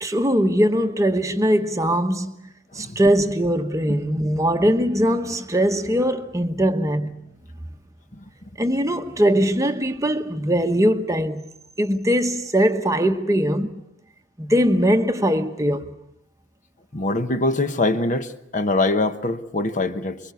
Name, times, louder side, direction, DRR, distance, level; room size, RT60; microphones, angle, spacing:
voice 1, 0.0-2.4 2.7-7.2 8.6-11.4 11.8-13.7 14.4-15.9, equal, 15° right, 1.0 m, -21 dB
voice 2, 16.9-20.2, left 2 dB, 35° left, 1.0 m, -23 dB
25.0 x 23.5 x 8.2 m
head